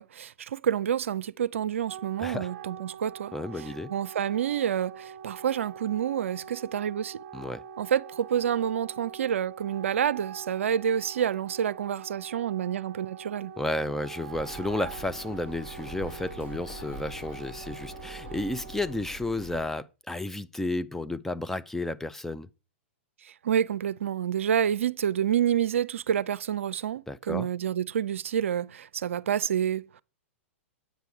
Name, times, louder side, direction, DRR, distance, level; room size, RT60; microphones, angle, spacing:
voice 1, 0.0-3.3 3.9-7.2 7.8-13.5 23.2-30.0, right 9 dB, 75° right, 0.5 m, -28 dB
Wind instrument woodwind instrument, 1.6-19.1, right 7 dB, 55° right, 1.1 m, -44 dB
voice 2, 2.2-2.5 3.3-3.9 7.3-7.6 13.6-22.5 27.1-27.5, left 2 dB, 5° left, 0.4 m, -32 dB
Bird, 14.3-19.7, equal, 30° left, 1.7 m, -44 dB
9.2 x 8.2 x 4.7 m
hypercardioid pair, 110°, 7 cm